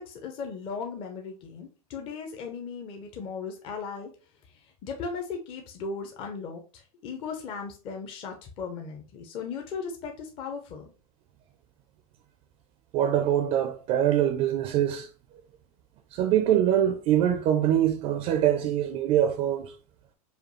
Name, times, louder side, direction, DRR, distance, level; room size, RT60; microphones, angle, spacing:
voice 1, 0.0-4.1 4.5-10.9, left 5 dB, 30° left, 0.6 m, -37 dB
voice 2, 12.9-15.1 16.1-19.7, right 11 dB, 35° right, 0.4 m, -24 dB
5.0 x 2.3 x 3.1 m
supercardioid pair, 145°, 19 cm